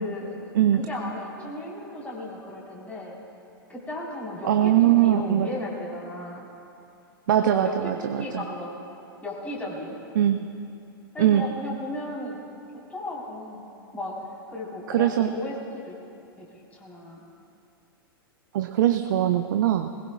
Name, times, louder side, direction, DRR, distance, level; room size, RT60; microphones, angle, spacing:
voice 1, 0.0-0.4 0.8-3.2 3.7-6.5 7.4-8.8 9.2-10.0 11.1-12.4 12.9-14.2 14.5-16.0 16.4-16.5 16.7-17.2, left 2 dB, 10° left, -4 dB, 4.0 m, -35 dB
voice 2, 4.4-5.5 7.3-8.4 10.2-10.5 11.2-11.5 14.9-15.3 18.5-19.9, right 11 dB, 55° right, 8 dB, 0.6 m, -21 dB
21.5 x 19.5 x 2.3 m, 2.6 s
figure-of-eight pair, 100°, 12 cm